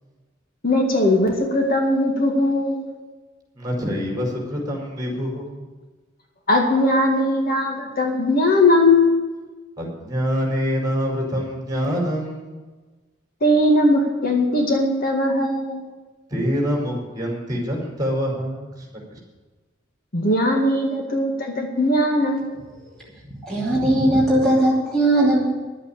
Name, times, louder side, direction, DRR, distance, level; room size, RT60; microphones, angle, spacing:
voice 1, 0.6-2.8 6.5-9.1 13.4-15.8 20.1-22.5, left 1 dB, 50° left, 1 dB, 2.0 m, -19 dB
voice 2, 3.5-5.7 9.8-12.6 16.3-19.2, equal, 20° right, -1 dB, 5.0 m, -26 dB
voice 3, 23.3-25.4, right 1 dB, 5° left, -7 dB, 2.8 m, -18 dB
11.5 x 8.5 x 8.6 m, 1.3 s
head